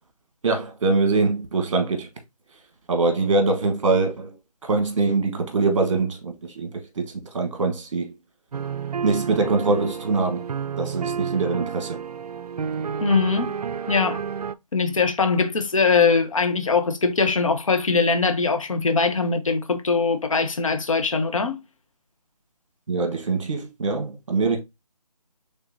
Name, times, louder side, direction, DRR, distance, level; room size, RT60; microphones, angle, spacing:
voice 1, 0.4-2.1 2.9-4.3 4.6-8.1 9.0-10.4 10.8-12.0 22.9-24.6, right 3 dB, 50° right, 1.3 m, -23 dB
sound 1, 8.5-14.5, right 6 dB, 70° right, 0.4 m, -31 dB
voice 2, 13.0-13.5 13.9-14.2 14.7-21.6, left 4 dB, 55° left, 0.8 m, -21 dB
4.2 x 3.5 x 2.7 m
figure-of-eight pair, 155°, 21 cm